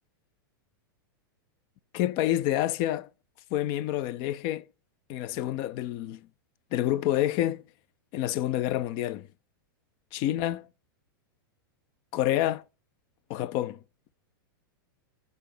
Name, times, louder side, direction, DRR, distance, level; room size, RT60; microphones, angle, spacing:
voice 1, 1.9-3.1 3.5-4.7 5.1-6.2 6.7-7.6 8.1-9.3 10.1-10.7 12.1-12.6 13.3-13.8, left 13 dB, 40° left, 0.5 m, -28 dB
6.8 x 4.0 x 5.0 m
hypercardioid pair, 130°, 12 cm